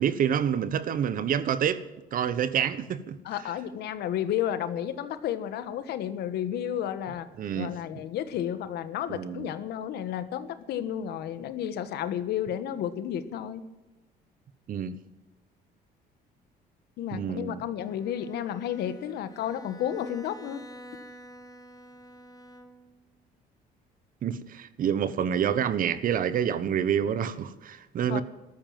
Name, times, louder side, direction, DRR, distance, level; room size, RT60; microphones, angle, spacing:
voice 1, 0.0-1.8 2.1-3.2 7.4-8.0 9.1-9.5 14.7-15.0 17.1-17.6 24.2-28.2, right 8 dB, 55° right, 1.2 m, -28 dB
voice 2, 3.2-7.3 7.5-13.6 17.0-20.6 28.1-28.2, left 10 dB, 75° left, 1.4 m, -32 dB
Bowed string instrument, 17.8-23.1, equal, 20° left, 1.7 m, -48 dB
14.5 x 13.0 x 7.6 m
cardioid pair, 110°, 17 cm